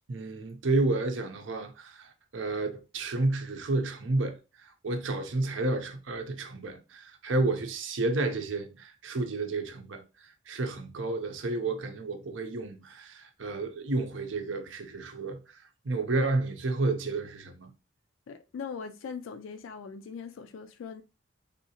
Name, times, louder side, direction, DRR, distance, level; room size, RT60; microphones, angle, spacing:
voice 1, 0.1-4.4 4.8-10.0 10.5-15.6 15.8-17.7, right 2 dB, 75° right, 0.6 m, -31 dB
voice 2, 18.3-21.0, left 6 dB, 85° left, 0.3 m, -40 dB
3.7 x 2.7 x 2.8 m
head